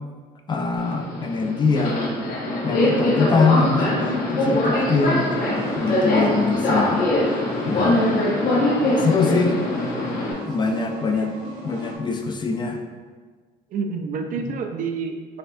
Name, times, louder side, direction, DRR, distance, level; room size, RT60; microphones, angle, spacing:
voice 1, 0.5-2.1 2.6-5.3 5.8-7.4 7.7-8.2 8.4-9.6 10.5-11.3 11.6-12.8, left 4 dB, 25° left, 4 dB, 0.4 m, -23 dB
Subway metro underground, 0.8-10.3, left 1 dB, 65° left, 1.0 m, -22 dB
sound 1, 4.9-12.0, equal, 80° right, 1.1 m, -37 dB
voice 2, 7.7-8.1 11.0-11.3 13.7-15.4, right 5 dB, 55° right, 5 dB, 0.4 m, -30 dB
4.2 x 3.2 x 2.6 m, 1.5 s
cardioid pair, 110°, 17 cm